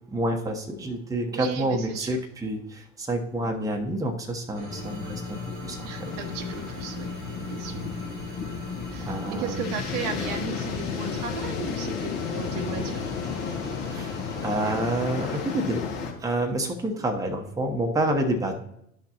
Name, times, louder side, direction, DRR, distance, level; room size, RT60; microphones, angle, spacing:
voice 1, 0.1-6.1 7.7-7.9 9.1-9.7 13.9-14.1 14.4-15.8 16.2-18.6, right 1 dB, 10° right, 3 dB, 1.0 m, -28 dB
voice 2, 1.3-2.2 3.4-3.7 5.8-7.1 7.5-7.9 8.9-13.0 16.6-17.0, right 5 dB, 60° right, 6 dB, 1.1 m, -35 dB
sound 1, 4.5-15.6, right 1 dB, 85° right, 1.8 m, -43 dB
sound 2, 4.7-10.5, left 5 dB, 15° left, 0.4 m, -38 dB
sound 3, 6.0-16.1, left 6 dB, 60° left, 1.8 m, -33 dB
11.5 x 6.1 x 2.9 m, 0.75 s
figure-of-eight pair, 75°, 41 cm